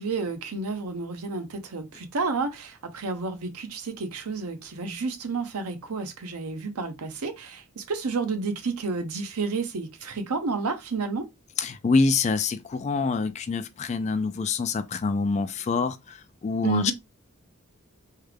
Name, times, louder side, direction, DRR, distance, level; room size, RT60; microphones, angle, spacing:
voice 1, 0.0-11.3 16.6-16.9, right 4 dB, 80° right, 0.7 m, -30 dB
voice 2, 11.6-16.0 16.4-16.9, left 4 dB, 30° left, 0.3 m, -25 dB
3.3 x 2.3 x 3.3 m
head